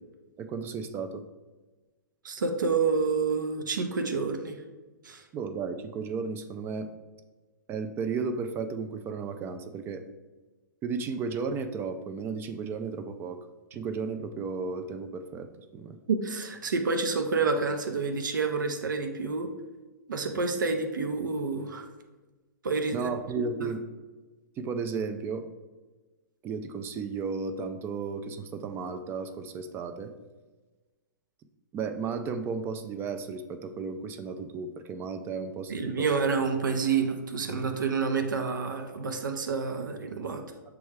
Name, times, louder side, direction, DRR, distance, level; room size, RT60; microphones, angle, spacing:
voice 1, 0.4-1.2 5.3-6.9 7.7-10.0 10.8-13.4 13.7-15.5 15.7-16.0 22.9-23.8 24.6-25.4 26.4-30.1 31.7-36.1, right 5 dB, 20° right, 7 dB, 0.3 m, -34 dB
voice 2, 2.2-4.6 5.0-5.2 16.1-19.5 20.1-21.9 22.6-23.1 23.4-23.7 35.7-40.4, right 4 dB, 80° right, 5 dB, 0.6 m, -28 dB
6.8 x 2.3 x 3.3 m, 1.2 s
hypercardioid pair, 120°, 10 cm